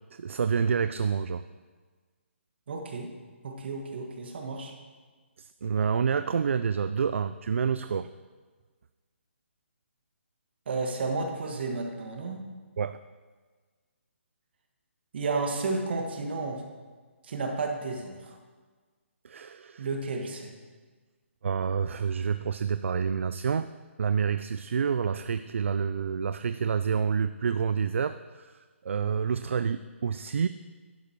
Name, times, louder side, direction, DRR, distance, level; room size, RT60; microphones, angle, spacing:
voice 1, 0.1-1.4 5.4-8.1 12.8-13.0 19.2-19.9 21.4-23.7 24.0-30.5, right 6 dB, 70° right, 12 dB, 0.4 m, -28 dB
voice 2, 2.7-3.1 3.4-4.7 10.7-12.4 15.1-16.6 17.2-18.4 19.8-20.5, right 3 dB, 50° right, 3 dB, 1.8 m, -32 dB
11.0 x 7.4 x 4.6 m, 1.4 s
hypercardioid pair, 160°, 7 cm